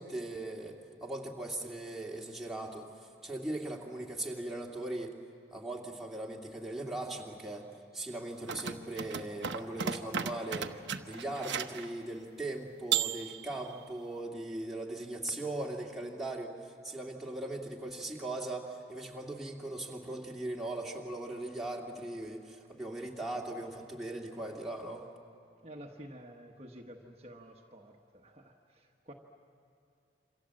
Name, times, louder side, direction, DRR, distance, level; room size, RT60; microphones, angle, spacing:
voice 1, 0.0-5.1 5.5-7.7 7.9-10.7 11.0-25.1, right 2 dB, ahead, -3 dB, 2.4 m, -39 dB
sound 1, 8.4-11.9 12.9-13.7, right 8 dB, 90° right, 1.0 m, -35 dB
voice 2, 25.6-29.1, right 1 dB, 35° right, 0 dB, 1.3 m, -50 dB
28.0 x 26.0 x 7.7 m, 2.6 s
head